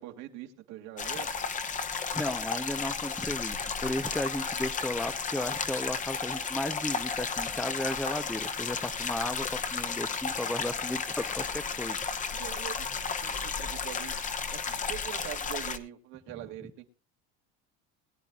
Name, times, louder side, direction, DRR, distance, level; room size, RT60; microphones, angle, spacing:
voice 1, 0.0-1.3 11.9-14.1 14.5-16.9, right 13 dB, 70° right, 4 dB, 2.2 m, -43 dB
sound 1, 1.0-15.8, left 5 dB, 25° left, 1.1 m, -33 dB
voice 2, 2.1-9.5 9.7-12.0, left 1 dB, ahead, 11 dB, 0.6 m, -34 dB
22.0 x 9.6 x 2.4 m, 0.33 s
cardioid pair, 135°, 30 cm